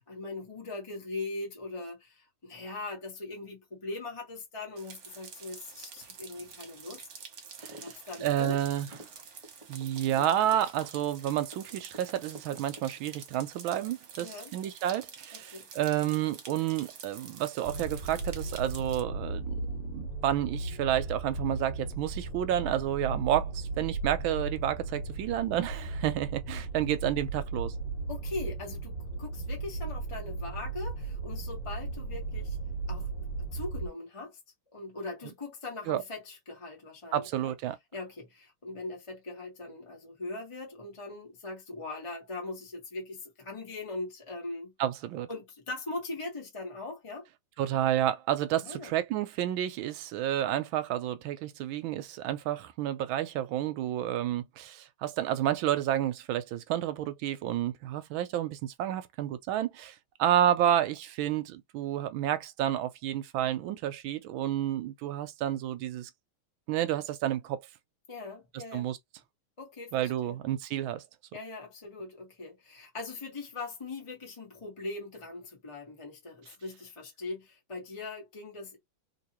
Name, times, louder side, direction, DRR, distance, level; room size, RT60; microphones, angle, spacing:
voice 1, 0.1-7.1 7.8-8.6 14.2-14.5 15.3-15.7 28.1-32.6 32.9-33.3 33.5-34.4 34.7-37.5 37.9-44.7 45.3-47.3 48.6-48.9 68.1-68.9 69.6-70.4 71.3-78.8, left 2 dB, 25° left, 0.8 m, -40 dB
sound 1, 4.8-19.0, right 6 dB, 55° right, 1.1 m, -48 dB
sound 2, 7.6-7.9 8.2-12.0 12.3-13.2, right 1 dB, 20° right, 1.0 m, -48 dB
voice 2, 8.2-8.9 9.7-27.7 35.9-36.0 37.1-37.8 44.8-45.3 47.6-66.1 66.7-67.6 68.5-69.0 69.9-71.0, right 11 dB, 75° right, 1.3 m, -30 dB
sound 3, 17.6-33.9, right 3 dB, 80° left, 1.9 m, -36 dB
3.5 x 2.9 x 2.9 m
omnidirectional pair, 2.4 m